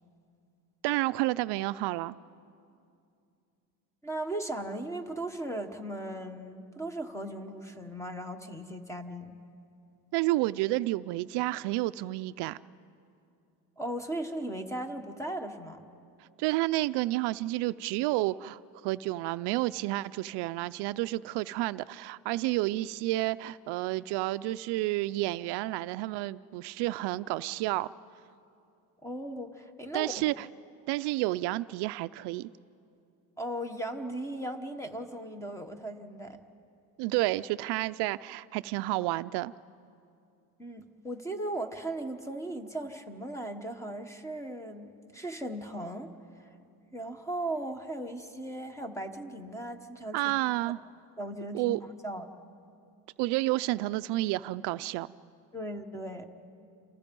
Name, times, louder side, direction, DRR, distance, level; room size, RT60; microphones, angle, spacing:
voice 1, 0.8-2.2 10.1-12.6 16.2-27.9 29.9-30.5 30.9-32.5 37.0-39.5 50.1-50.8 51.5-51.8 53.2-55.1, right 18 dB, 65° right, 14 dB, 0.5 m, -30 dB
voice 2, 4.0-9.4 13.8-15.8 29.0-30.1 33.4-36.4 40.6-46.1 46.4-46.5 46.9-50.2 51.2-51.8 52.0-52.3 55.5-56.3, right 1 dB, 5° left, 7 dB, 1.2 m, -37 dB
29.0 x 27.5 x 5.3 m, 2.5 s
cardioid pair, 155°, 43 cm